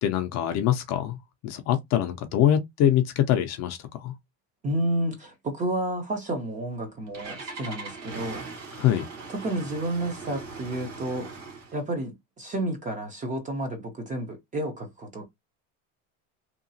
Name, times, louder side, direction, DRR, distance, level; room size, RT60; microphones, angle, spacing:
voice 1, 0.0-4.1 8.8-9.1, left 11 dB, 40° left, 0.4 m, -24 dB
voice 2, 4.6-8.4 9.3-11.3 11.7-15.2, right 1 dB, 20° right, 0.5 m, -31 dB
Engine starting, 6.6-11.8, right 3 dB, 45° right, 1.1 m, -40 dB
2.9 x 2.3 x 2.6 m
supercardioid pair, 145°, 44 cm